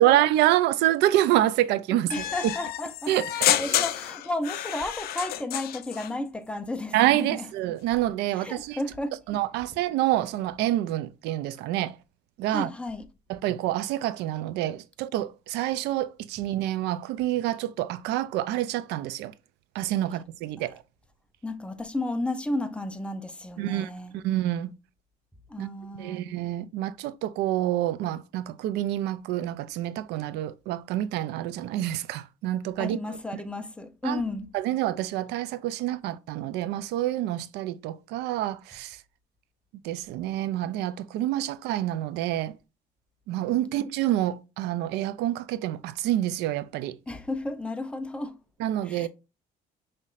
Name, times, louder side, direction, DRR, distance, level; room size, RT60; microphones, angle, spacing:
voice 1, 0.0-2.2 3.1-3.5 6.9-8.8 9.3-12.0 12.4-12.7 13.3-19.3 19.7-20.8 23.6-24.7 25.6-25.7 25.9-33.4 34.0-34.2 34.5-39.0 39.8-42.5 43.3-47.0 48.6-49.1, right 13 dB, 85° right, 0.4 m, -27 dB
sound 1, 2.1-6.1, left 12 dB, 65° left, 0.4 m, -29 dB
voice 2, 2.1-7.5 8.4-9.1 12.5-13.1 21.4-24.1 25.5-26.3 32.8-34.5 47.1-48.4 48.9-49.1, left 2 dB, 5° left, 0.6 m, -33 dB
5.6 x 3.1 x 2.4 m
cardioid pair, 110°, 17 cm